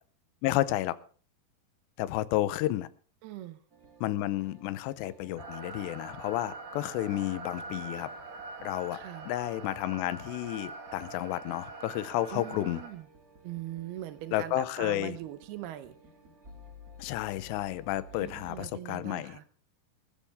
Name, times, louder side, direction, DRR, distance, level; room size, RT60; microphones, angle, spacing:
voice 1, 0.4-1.0 2.0-2.9 4.0-8.1 8.6-12.8 14.3-15.2 17.0-19.4, left 15 dB, 85° left, 15 dB, 2.9 m, -31 dB
voice 2, 3.2-3.6 8.9-9.3 12.3-13.1 13.4-16.0 18.2-19.5, right 14 dB, 75° right, 11 dB, 2.7 m, -41 dB
sound 1, 3.7-18.6, equal, 30° right, 2.0 m, -56 dB
sound 2, 5.4-12.9, right 3 dB, 45° right, 3.8 m, -44 dB
sound 3, 7.5-8.7, left 5 dB, 60° left, 3.6 m, -60 dB
20.0 x 12.5 x 3.5 m, 0.42 s
omnidirectional pair, 5.0 m